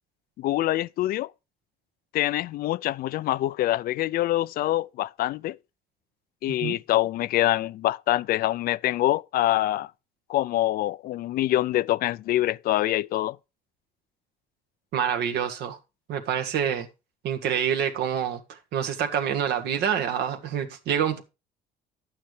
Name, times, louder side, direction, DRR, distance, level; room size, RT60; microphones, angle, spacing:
voice 1, 0.4-1.3 2.1-5.6 6.4-9.9 10.3-13.4, left 15 dB, 65° left, 0.4 m, -25 dB
voice 2, 14.9-15.8 16.1-16.9 17.2-21.2, right 8 dB, 75° right, 1.6 m, -27 dB
11.0 x 8.7 x 3.2 m
cardioid pair, 110°, 17 cm